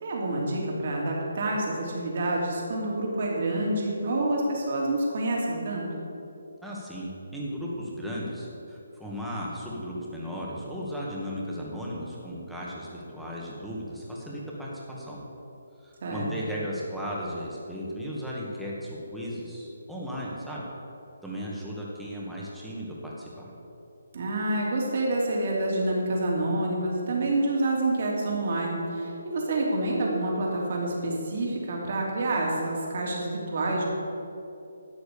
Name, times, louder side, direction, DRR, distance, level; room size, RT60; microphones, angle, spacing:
voice 1, 0.0-5.9 16.0-16.3 24.1-33.8, right 2 dB, 50° right, -2 dB, 3.3 m, -28 dB
voice 2, 6.6-15.2 15.8-20.6 21.2-23.5, equal, ahead, -6 dB, 2.0 m, -36 dB
12.0 x 8.0 x 7.0 m, 2.8 s
hypercardioid pair, 155°, 0 cm